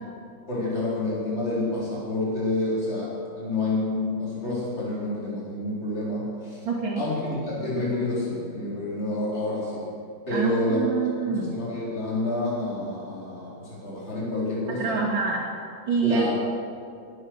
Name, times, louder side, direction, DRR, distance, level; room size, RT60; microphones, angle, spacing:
voice 1, 0.5-6.6 7.0-9.8 10.3-15.0 16.0-16.3, left 2 dB, 30° left, -7 dB, 4.4 m, -28 dB
voice 2, 6.6-7.0 10.3-11.5 14.7-15.4 15.9-16.3, right 5 dB, 65° right, -5 dB, 2.7 m, -26 dB
20.5 x 9.6 x 6.4 m, 2.4 s
omnidirectional pair, 2.3 m